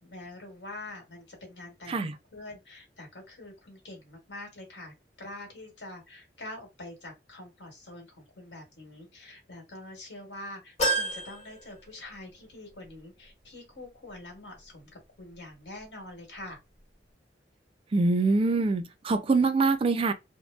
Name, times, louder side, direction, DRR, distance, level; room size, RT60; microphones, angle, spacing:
voice 1, 0.0-16.6, left 2 dB, 80° left, 1.3 m, -45 dB
sound 1, 10.8-12.4 12.9-13.0 14.2-14.3, right 2 dB, 40° left, 1.1 m, -31 dB
voice 2, 17.9-20.1, right 3 dB, 30° right, 0.3 m, -24 dB
2.6 x 2.1 x 2.3 m
head